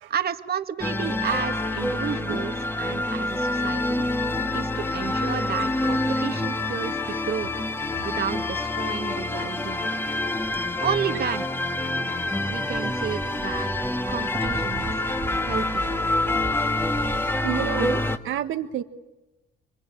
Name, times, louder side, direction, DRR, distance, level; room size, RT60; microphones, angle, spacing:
voice 1, 0.1-4.1 4.5-7.5 8.0-10.1 10.8-11.5 12.5-13.7 14.1-14.9 15.4-16.1, right 7 dB, 50° right, 9 dB, 1.6 m, -31 dB
sound 1, 0.8-18.2, left 2 dB, 10° left, 1.7 m, -27 dB
sound 2, 1.7-17.2, right 4 dB, 25° right, 1.8 m, -45 dB
voice 2, 17.4-18.8, right 11 dB, 80° right, 8 dB, 1.6 m, -30 dB
26.5 x 25.0 x 8.6 m, 1.1 s
cardioid pair, 90°, 20 cm